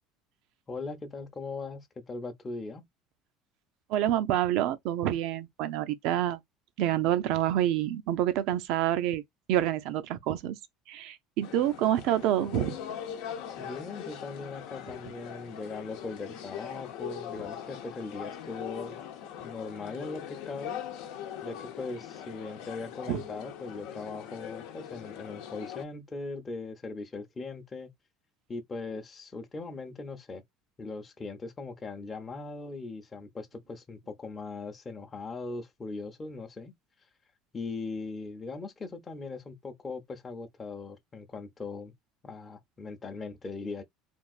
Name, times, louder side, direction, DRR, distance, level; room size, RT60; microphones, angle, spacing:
voice 1, 0.7-2.8 13.6-19.0 19.4-20.8 21.4-27.9 28.5-30.4 30.8-36.7 37.5-41.9 42.2-43.8, left 3 dB, 25° left, 0.7 m, -39 dB
voice 2, 3.9-6.4 6.8-9.2 9.5-10.6 10.9-12.8 23.1-23.2, right 12 dB, 70° right, 0.5 m, -27 dB
sound 1, 11.4-25.8, left 9 dB, 80° left, 0.8 m, -41 dB
3.4 x 2.4 x 2.4 m
cardioid pair, 125°, 0 cm